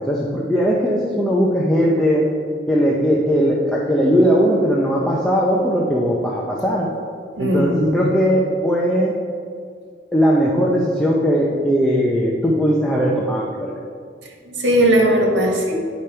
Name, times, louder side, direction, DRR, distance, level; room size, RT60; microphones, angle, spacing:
voice 1, 0.1-2.3 2.7-6.9 7.4-9.1 10.1-13.8, equal, 5° left, -4 dB, 0.7 m, -18 dB
voice 2, 7.3-8.1 14.5-15.7, right 1 dB, 85° right, 0 dB, 1.6 m, -18 dB
9.8 x 5.2 x 4.4 m, 2.2 s
head